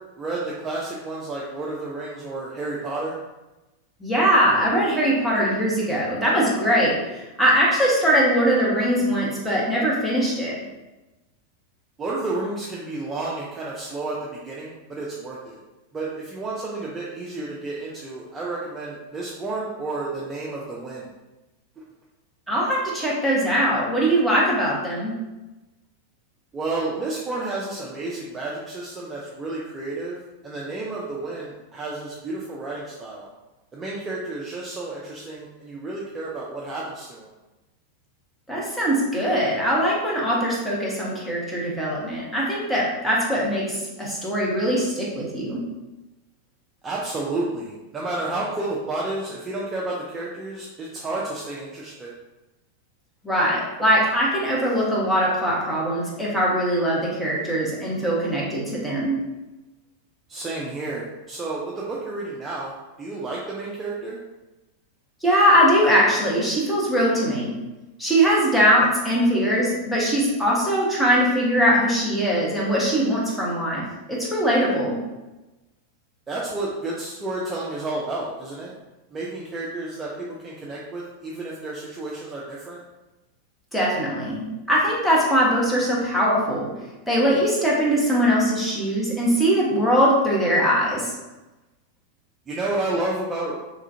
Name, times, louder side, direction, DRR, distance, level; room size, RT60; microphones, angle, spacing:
voice 1, 0.2-3.2 12.0-15.6 15.9-21.1 26.5-33.3 33.7-37.3 46.8-52.1 60.3-64.2 76.3-78.7 79.1-82.8 92.5-93.6, right 2 dB, 20° right, -5 dB, 0.4 m, -31 dB
voice 2, 4.0-10.6 22.5-25.2 38.5-45.6 53.2-59.2 65.2-67.5 68.0-75.0 83.7-86.7 87.1-91.1, equal, 5° left, -6 dB, 0.9 m, -21 dB
3.2 x 2.4 x 2.7 m, 1.1 s
figure-of-eight pair, 90°, 0 cm